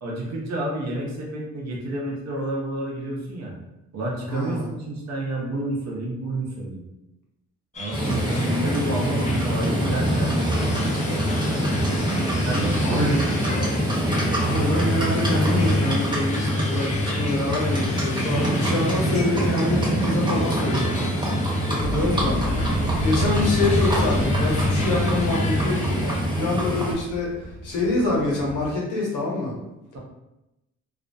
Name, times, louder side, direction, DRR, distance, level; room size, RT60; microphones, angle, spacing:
voice 1, 0.0-3.5 3.9-6.8 7.8-11.3 12.4-13.2 13.6-13.7, right 1 dB, 60° right, -2 dB, 0.8 m, -29 dB
voice 2, 4.3-4.7 12.8-13.2 14.4-21.1 21.7-29.5, left 2 dB, 80° left, -3 dB, 0.9 m, -26 dB
sound 1, 7.7-26.2, left 2 dB, 25° left, 0.4 m, -37 dB
Livestock farm animals working animals, 7.9-26.9, equal, 15° right, 1.0 m, -24 dB
sound 2, 21.8-28.7, equal, 35° right, 1.0 m, -30 dB
2.4 x 2.0 x 2.6 m, 0.93 s
cardioid pair, 90°, 30 cm